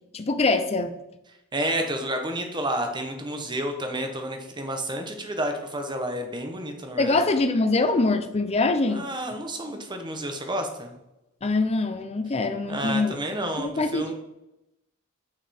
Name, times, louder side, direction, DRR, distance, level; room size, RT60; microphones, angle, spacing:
voice 1, 0.1-0.9 7.0-9.1 11.4-13.2 13.6-14.1, left 3 dB, 30° left, 8 dB, 0.5 m, -24 dB
voice 2, 1.5-7.2 8.8-10.9 12.7-14.1, right 1 dB, 20° right, 4 dB, 1.0 m, -30 dB
6.8 x 6.1 x 4.3 m, 0.90 s
head